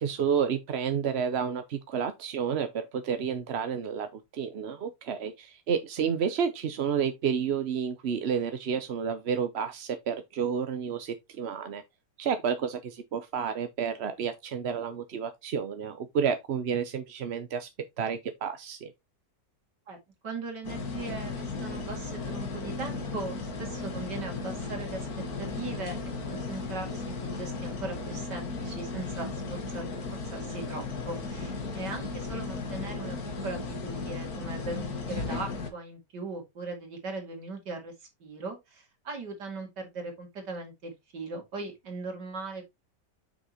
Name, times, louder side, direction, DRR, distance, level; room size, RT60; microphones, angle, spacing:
voice 1, 0.0-11.8 12.2-17.7 18.0-18.9, right 7 dB, 50° right, 0.8 m, -30 dB
voice 2, 20.2-25.1 25.4-33.2 33.4-42.6, right 3 dB, 80° right, 3.2 m, -39 dB
sound 1, 20.6-35.7, left 3 dB, 60° left, 2.0 m, -35 dB
7.7 x 6.3 x 2.9 m
omnidirectional pair, 1.8 m